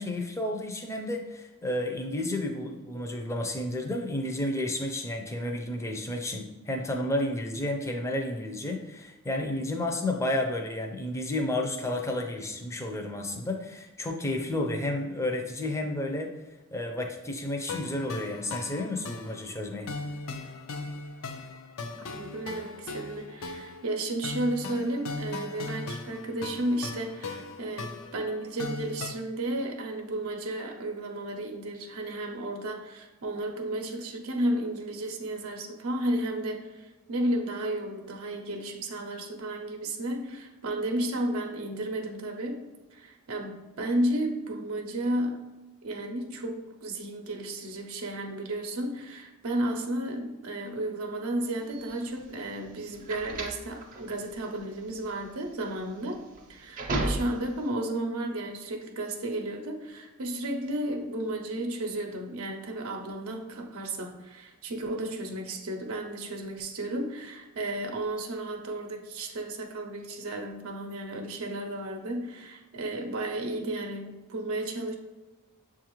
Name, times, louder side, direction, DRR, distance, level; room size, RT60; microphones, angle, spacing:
voice 1, 0.0-16.3 16.7-19.9, left 1 dB, 15° left, 2 dB, 0.4 m, -31 dB
sound 1, 17.7-29.1, left 3 dB, 75° left, 0.4 m, -39 dB
voice 2, 21.9-45.5 45.8-56.2 56.5-74.9, right 1 dB, 85° right, 2 dB, 0.6 m, -33 dB
sound 2, 51.7-57.7, right 2 dB, 40° right, 0.5 m, -35 dB
6.6 x 2.4 x 3.0 m, 1.1 s
head